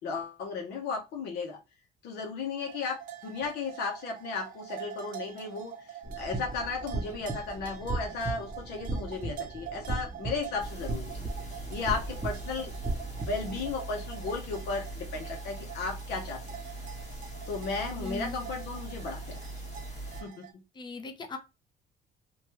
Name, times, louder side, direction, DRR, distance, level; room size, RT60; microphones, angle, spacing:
voice 1, 0.0-1.6 2.0-11.3 11.7-12.7 13.2-16.6 17.5-19.4 20.2-20.6, left 4 dB, 75° left, 2 dB, 0.8 m, -35 dB
sound 1, 2.6-20.5, right 9 dB, 55° right, 0.6 m, -46 dB
sound 2, 6.0-13.7, right 2 dB, 20° right, 0.7 m, -37 dB
sound 3, 10.6-20.2, right 2 dB, 40° left, 1.3 m, -41 dB
voice 2, 18.0-18.4 20.7-21.4, left 4 dB, 25° left, 6 dB, 0.6 m, -38 dB
3.0 x 2.3 x 2.9 m, 0.27 s
cardioid pair, 110°, 17 cm